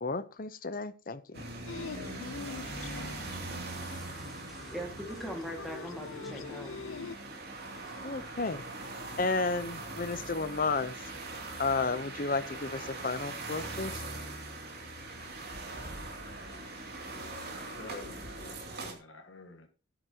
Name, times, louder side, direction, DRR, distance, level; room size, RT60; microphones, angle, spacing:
voice 1, 0.0-1.4 8.0-8.6 9.2-10.9 11.6-14.0, left 3 dB, 45° left, 0.7 m, -32 dB
sound 1, 1.3-18.9, right 2 dB, 50° right, 2.8 m, -41 dB
sound 2, 1.7-7.2, left 5 dB, 85° left, 0.5 m, -44 dB
voice 2, 3.7-8.4, right 1 dB, ahead, 1.9 m, -44 dB
voice 3, 16.2-16.8 17.1-18.5 18.8-19.7, left 3 dB, 70° left, 1.7 m, -50 dB
12.5 x 10.0 x 2.9 m
head